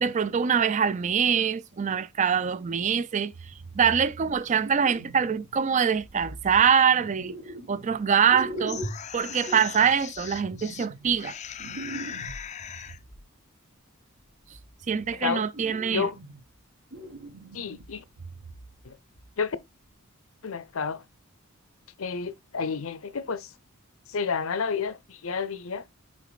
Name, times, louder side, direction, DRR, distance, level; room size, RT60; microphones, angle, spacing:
voice 1, 0.0-3.3 3.7-7.4 7.7-8.8 9.1-11.3 14.9-16.1, right 7 dB, 35° right, 0.4 m, -24 dB
sound 1, 3.3-5.6 5.9-8.0 8.2-13.2 14.2-15.2 15.5-16.6 16.9-18.9 19.1-19.3 19.9-20.0, right 1 dB, 75° right, 2.0 m, -42 dB
sound 2, 8.4-10.9 11.2-13.0, left 9 dB, 35° left, 0.4 m, -39 dB
voice 2, 15.1-15.5 15.9-16.2 17.5-18.0 18.8-19.0 19.4-19.6 20.4-21.0 22.0-23.5 24.1-25.8, left 5 dB, 70° left, 0.7 m, -30 dB
6.1 x 4.0 x 4.0 m
head